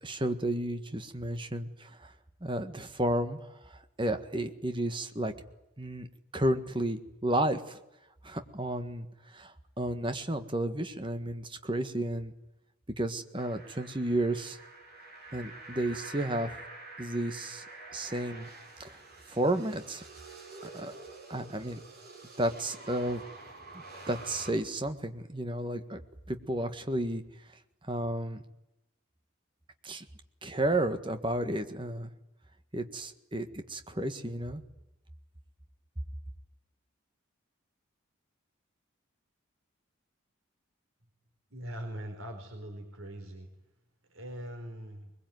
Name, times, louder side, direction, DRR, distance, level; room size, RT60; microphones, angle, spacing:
voice 1, 0.0-2.1 2.4-5.3 5.8-6.1 6.3-7.8 8.2-9.1 9.3-12.3 13.0-14.6 15.3-16.5 17.0-17.6 17.9-18.5 18.8-19.0 19.3-20.0 20.6-20.9 21.3-21.8 22.4-23.2 23.7-26.0 26.3-28.4 29.8-30.0 30.4-32.1 32.7-34.6, right 1 dB, 25° right, 8 dB, 1.6 m, -32 dB
sound 1, 13.4-24.5, right 3 dB, 45° right, 7.4 m, -47 dB
voice 2, 41.5-43.5 44.1-45.1, right 1 dB, 75° right, 4 dB, 4.1 m, -41 dB
22.0 x 21.5 x 9.5 m, 0.88 s
head